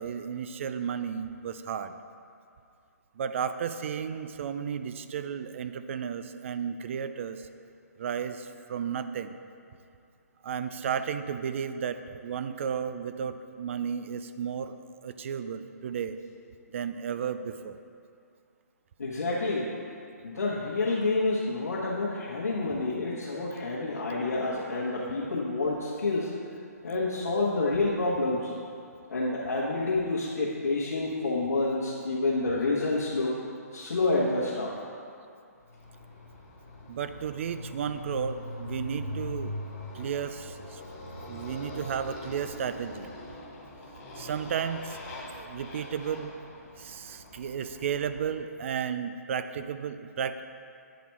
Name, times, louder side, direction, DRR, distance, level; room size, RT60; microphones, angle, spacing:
voice 1, 0.0-1.9 3.2-7.4 8.0-9.4 10.4-14.7 15.0-16.2 16.7-17.8 36.9-39.5 39.9-40.8 41.2-43.1 44.2-45.0 45.3-46.3 46.8-50.4, right 7 dB, 50° right, 10 dB, 0.4 m, -33 dB
voice 2, 19.0-19.7 20.2-26.3 26.8-28.5 29.1-33.3 33.7-34.8, left 2 dB, 85° left, -8 dB, 1.3 m, -28 dB
Motorcycle, 35.7-48.4, left 2 dB, 30° left, 1.4 m, -42 dB
9.1 x 4.2 x 4.6 m, 2.4 s
hypercardioid pair, 145°, 9 cm